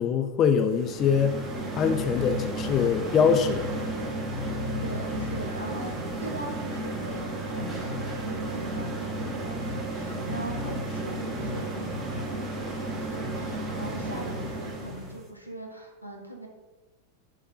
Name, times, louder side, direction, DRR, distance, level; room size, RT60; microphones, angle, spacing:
voice 1, 0.0-1.4 1.8-3.7, left 7 dB, 30° left, 7 dB, 0.4 m, -23 dB
sound 1, 0.7-15.2, right 1 dB, 25° right, 1.2 m, -33 dB
voice 2, 4.8-16.5, right 2 dB, 85° right, 0 dB, 1.1 m, -41 dB
6.5 x 3.2 x 5.0 m, 1.2 s
figure-of-eight pair, 90°, 0 cm